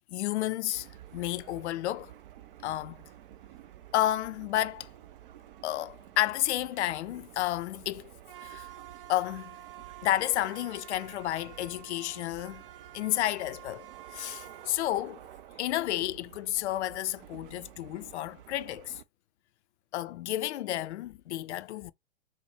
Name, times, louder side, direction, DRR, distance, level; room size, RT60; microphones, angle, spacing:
voice 1, 0.1-0.9 1.1-2.1 2.6-3.0 3.9-4.9 5.6-8.1 8.4-8.7 9.1-9.6 10.0-12.6 12.9-15.2 15.6-19.0 19.9-21.9, left 14 dB, 65° left, 0.5 m, -31 dB
sound 1, 0.7-19.0, right 12 dB, 45° right, 0.5 m, -49 dB
4.1 x 2.1 x 3.2 m
hypercardioid pair, 120°, 38 cm